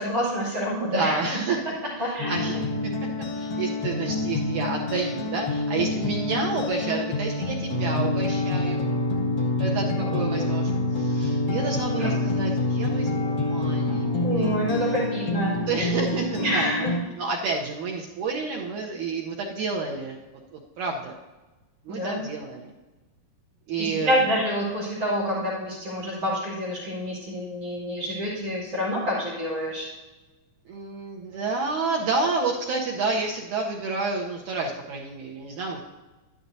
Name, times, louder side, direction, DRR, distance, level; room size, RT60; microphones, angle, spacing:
voice 1, 0.0-1.4 2.0-2.4 9.9-10.2 12.0-12.1 14.2-15.6 16.4-16.9 21.9-22.2 23.8-29.9, equal, 45° right, -5 dB, 3.2 m, -27 dB
voice 2, 0.9-2.7 3.3-8.9 9.6-9.9 10.1-14.9 15.7-16.9 17.2-20.2 20.5-21.2 21.9-22.7 23.7-24.2 30.7-35.8, right 4 dB, 75° right, -1 dB, 1.9 m, -30 dB
sound 1, 2.2-17.0, left 2 dB, 50° left, 1.2 m, -27 dB
12.5 x 11.0 x 2.7 m, 1.1 s
omnidirectional pair, 4.3 m